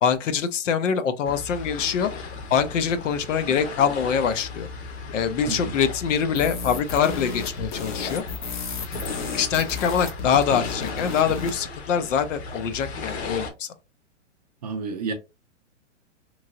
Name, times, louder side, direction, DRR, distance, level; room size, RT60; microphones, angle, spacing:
voice 1, 0.0-2.1 2.5-4.7 5.1-8.2 9.3-13.7, left 7 dB, 75° left, 0.7 m, -24 dB
sound 1, 1.2-13.5, left 3 dB, 55° left, 1.0 m, -36 dB
sound 2, 6.3-11.6, left 4 dB, 40° left, 0.7 m, -33 dB
voice 2, 14.6-15.1, right 4 dB, 35° right, 0.4 m, -30 dB
3.0 x 2.8 x 2.5 m
hypercardioid pair, 160°, 38 cm